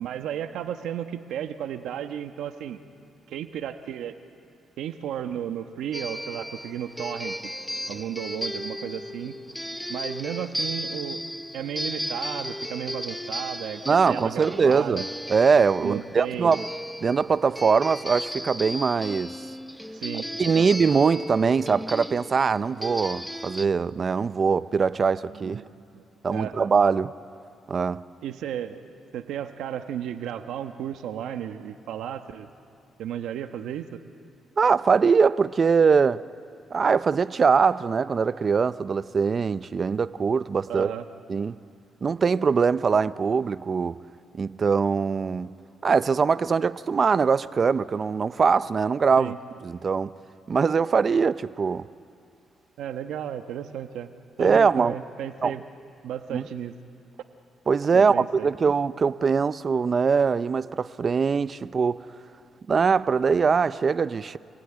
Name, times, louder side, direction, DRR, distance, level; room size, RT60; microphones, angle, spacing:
voice 1, 0.0-2.8 3.3-4.1 4.8-7.5 7.9-9.3 9.9-11.2 11.5-13.8 14.1-15.0 15.8-16.6 19.9-20.3 20.5-20.7 25.3-26.0 26.3-26.6 28.2-28.8 29.1-32.5 33.0-34.0 40.7-41.1 49.2-49.4 52.8-54.1 54.4-55.6 56.0-56.7 57.9-58.5, right 10 dB, 80° right, 1.2 m, -34 dB
sound 1, 5.9-23.7, equal, ahead, 0.6 m, -35 dB
voice 2, 13.9-15.0 15.3-16.7 17.0-19.4 20.4-25.6 26.2-27.1 27.7-28.0 34.6-36.2 36.7-40.9 41.3-41.6 42.0-44.0 44.3-45.5 45.8-49.3 49.6-50.1 50.5-51.9 54.4-54.9 55.4-55.5 56.3-56.4 57.7-62.0 62.7-64.4, right 5 dB, 40° right, 0.6 m, -22 dB
27.5 x 20.5 x 9.9 m
cardioid pair, 90°, 0 cm